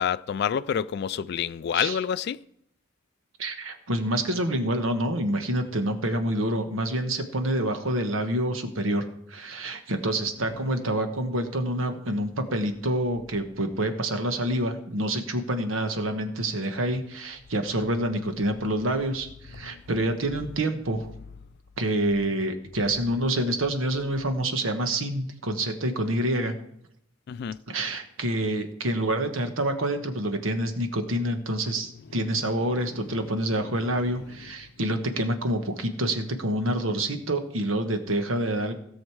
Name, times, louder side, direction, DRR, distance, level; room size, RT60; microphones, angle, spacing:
voice 1, 0.0-2.4 27.3-27.6, left 8 dB, 55° left, 0.3 m, -27 dB
voice 2, 3.4-21.1 21.8-26.6 27.7-38.7, right 1 dB, 85° right, 1.2 m, -27 dB
17.0 x 6.4 x 4.7 m
head